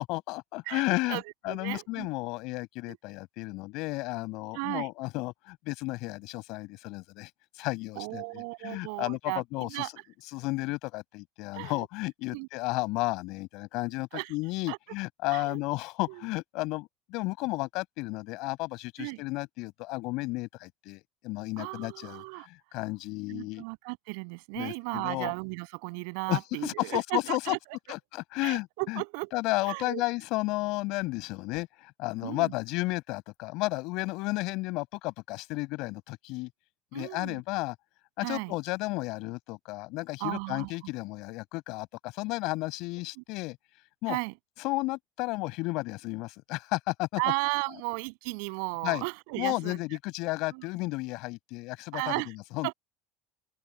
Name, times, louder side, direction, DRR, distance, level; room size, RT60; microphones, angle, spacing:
voice 1, 0.0-1.2 1.4-9.9 10.3-23.6 24.6-25.3 26.3-27.5 27.9-29.0 29.3-36.5 36.9-37.8 38.2-43.6 44.0-44.2 44.6-47.2 48.8-49.0 49.4-52.7, left 22 dB, 65° left, 5.7 m, -33 dB
voice 2, 0.7-2.1 2.9-3.0 4.5-4.9 7.9-9.9 11.5-11.9 12.3-12.5 14.1-14.3 14.7-14.8 15.3-15.6 16.1-16.2 19.0-19.2 21.6-22.5 23.3-28.0 28.4-29.3 29.6-30.0 32.2-32.5 36.9-37.4 38.2-38.5 40.2-40.7 43.2-43.3 44.1-44.3 47.2-49.8 50.2-50.6 51.9-52.3 52.6-52.7, right 34 dB, 80° right, 7.6 m, -35 dB
open air
cardioid pair, 150°, 0 cm